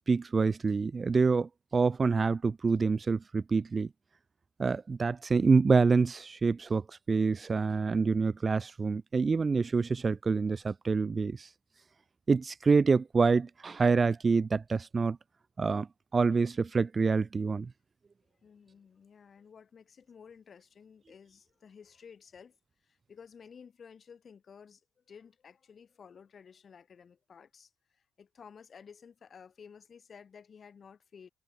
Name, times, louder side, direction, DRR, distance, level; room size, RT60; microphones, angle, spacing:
voice 1, 0.1-3.9 4.6-11.5 12.3-15.2 15.6-15.9 16.1-17.7, right 4 dB, 35° right, 0.7 m, -26 dB
voice 2, 18.4-22.6 22.8-31.3, left 6 dB, 45° left, 4.7 m, -54 dB
cardioid pair, 90°, 0 cm